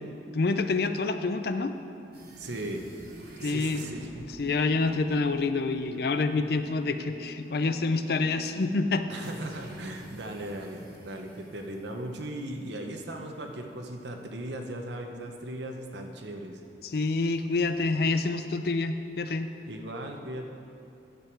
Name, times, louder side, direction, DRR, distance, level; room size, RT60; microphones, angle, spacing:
voice 1, 0.3-1.7 3.4-3.9 4.4-9.1 16.8-19.5, left 3 dB, 60° left, 9 dB, 0.4 m, -27 dB
sound 1, 2.1-13.1, equal, 55° right, 1.3 m, -49 dB
voice 2, 2.4-2.9 3.4-4.3 9.1-16.6 19.7-20.5, right 1 dB, 80° right, 3 dB, 0.9 m, -38 dB
10.5 x 6.8 x 4.6 m, 2.6 s
head